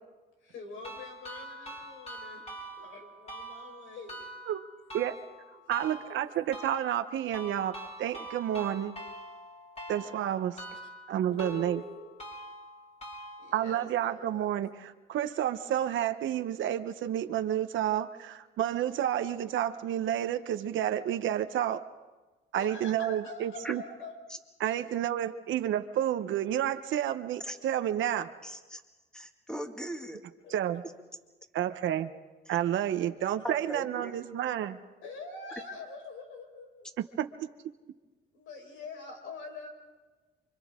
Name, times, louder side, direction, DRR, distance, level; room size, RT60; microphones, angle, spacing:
voice 1, 0.4-2.5 2.8-4.2 11.3-12.1 13.4-14.5 22.5-24.1 30.4-30.6 35.0-36.9 38.3-39.7, left 3 dB, 90° left, 2 dB, 4.7 m, -44 dB
sound 1, 0.8-13.8, right 1 dB, 30° left, 5.5 m, -45 dB
voice 2, 5.7-7.7 8.0-8.9 9.9-10.6 11.1-11.8 13.5-21.8 22.5-23.8 24.6-28.3 30.5-30.8 31.5-32.1 32.5-34.8 37.0-37.5, right 11 dB, 75° right, 9 dB, 0.9 m, -30 dB
voice 3, 28.4-28.8 29.1-30.2 32.5-32.6 33.4-34.1, equal, 5° left, 4 dB, 2.1 m, -39 dB
29.0 x 24.5 x 3.7 m, 1.3 s
cardioid pair, 90°, 20 cm